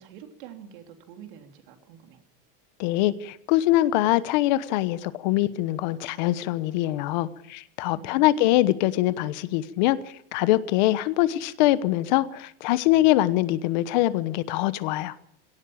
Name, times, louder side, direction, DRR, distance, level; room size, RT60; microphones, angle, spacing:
voice 1, 0.0-2.2 7.9-8.6, right 9 dB, 60° right, 5 dB, 3.4 m, -46 dB
voice 2, 2.8-15.2, left 15 dB, 50° left, 15 dB, 1.1 m, -23 dB
18.0 x 18.0 x 8.7 m, 0.70 s
supercardioid pair, 175°, 29 cm